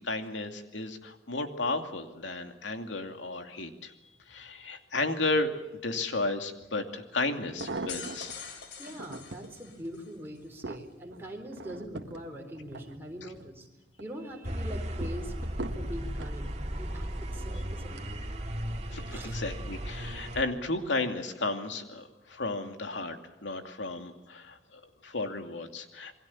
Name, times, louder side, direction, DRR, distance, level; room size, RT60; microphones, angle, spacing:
voice 1, 0.0-3.9 4.3-5.5 5.8-8.4 18.9-23.2 23.4-26.2, left 2 dB, 90° left, 5 dB, 2.6 m, -33 dB
sound 1, 6.6-6.7 7.3-8.4 8.9-9.5 10.1-13.5 13.9-14.4 15.0-16.4 17.1-17.5 17.8-17.9, right 2 dB, 75° right, 1.6 m, -42 dB
sound 2, 7.6-10.1, left 6 dB, 65° left, 3.8 m, -44 dB
voice 2, 8.8-13.7 14.0-18.1 19.1-19.4, equal, 15° right, 0 dB, 4.0 m, -42 dB
sound 3, 14.4-20.4, equal, 35° right, 2.3 m, -36 dB
28.5 x 22.0 x 7.2 m, 0.96 s
head